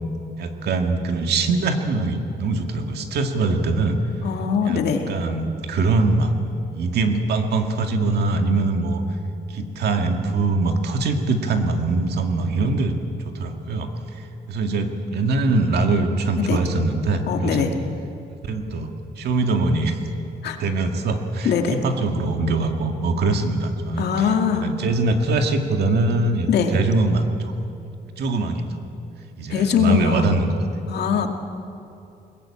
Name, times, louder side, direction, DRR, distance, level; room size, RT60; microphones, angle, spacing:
voice 1, 0.4-4.0 4.6-6.3 6.7-9.0 9.5-13.0 13.2-13.9 14.1-17.7 18.4-20.0 20.6-27.5 28.2-28.7 29.4-30.5, right 3 dB, 70° right, 5 dB, 2.1 m, -23 dB
voice 2, 4.2-5.0 16.4-16.6 17.3-17.7 20.4-20.6 21.4-21.8 24.0-24.7 26.5-26.8 29.5-30.3 30.9-31.3, left 7 dB, 70° left, 4 dB, 2.2 m, -21 dB
22.0 x 20.0 x 8.9 m, 2.7 s
cardioid pair, 180°, 17 cm